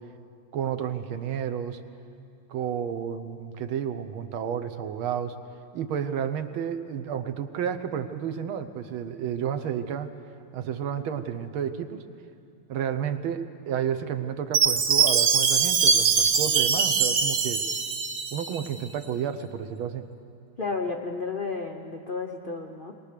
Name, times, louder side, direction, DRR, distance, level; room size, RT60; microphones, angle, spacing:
voice 1, 0.5-1.8 2.5-5.4 5.7-10.1 10.5-12.0 12.7-17.6 18.3-20.0, right 8 dB, 75° right, 9 dB, 1.7 m, -31 dB
Chime, 14.5-18.7, right 6 dB, 55° right, 1.6 m, -22 dB
voice 2, 20.6-22.9, left 4 dB, 75° left, 3 dB, 0.4 m, -32 dB
22.5 x 19.5 x 6.7 m, 2.5 s
omnidirectional pair, 2.3 m